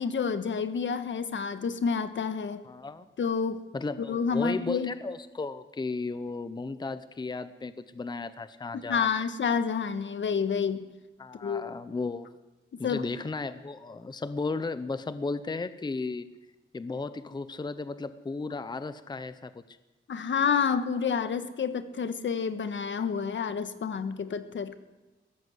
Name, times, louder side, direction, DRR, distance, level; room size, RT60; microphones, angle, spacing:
voice 1, 0.0-2.6 3.2-3.6 4.0-4.9 8.7-10.9 11.4-11.7 12.8-13.0 20.1-24.8, left 6 dB, 70° left, 11 dB, 1.5 m, -29 dB
voice 2, 2.6-3.1 3.7-9.2 11.2-12.3 12.8-16.3 16.7-19.8, left 3 dB, 20° left, 13 dB, 0.7 m, -35 dB
21.5 x 17.0 x 8.0 m, 1.1 s
wide cardioid pair, 170°, 20 cm